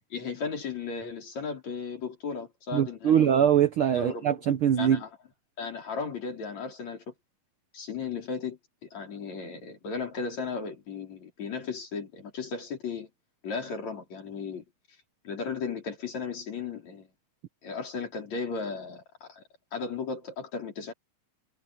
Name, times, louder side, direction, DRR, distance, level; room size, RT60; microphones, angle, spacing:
voice 1, 0.1-3.3 3.9-4.3 4.8-5.1 5.6-7.0 7.7-8.6 8.9-13.1 13.4-14.6 15.2-17.1 17.6-19.4 19.7-20.9, left 5 dB, 60° left, 5.7 m, -35 dB
voice 2, 2.7-5.0, right 9 dB, 65° right, 1.3 m, -23 dB
omnidirectional pair, 3.5 m